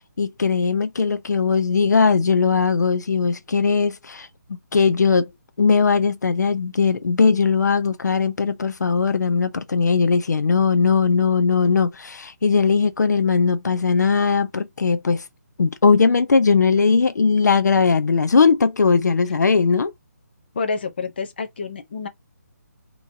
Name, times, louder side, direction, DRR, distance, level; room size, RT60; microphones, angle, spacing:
voice 1, 0.0-4.3 4.7-5.3 5.6-15.2 15.6-19.9, left 5 dB, 75° left, 0.6 m, -19 dB
voice 2, 20.5-22.1, left 4 dB, 35° left, 0.7 m, -28 dB
3.8 x 3.0 x 2.6 m
hypercardioid pair, 175°, 9 cm